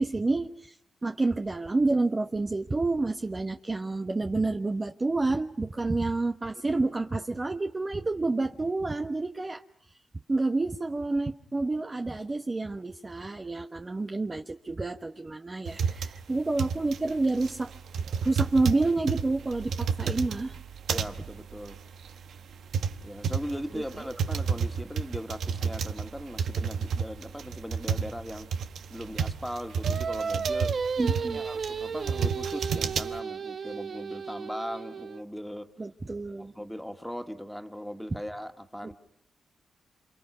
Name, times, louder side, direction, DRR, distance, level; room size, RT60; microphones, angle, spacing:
voice 1, 0.0-9.6 10.3-17.7 18.2-20.6 23.7-24.1 31.0-31.4 35.8-36.5 38.8-38.9, right 3 dB, 30° right, 5 dB, 1.1 m, -29 dB
sound 1, 15.7-33.2, right 6 dB, 75° right, 1.1 m, -31 dB
voice 2, 20.9-21.8 23.0-28.5 28.9-30.7 31.3-35.7 36.4-38.9, equal, ahead, 5 dB, 2.2 m, -39 dB
Singing, 29.8-35.2, right 5 dB, 55° right, 1.2 m, -33 dB
28.5 x 26.5 x 5.7 m, 0.70 s
cardioid pair, 75°, 0 cm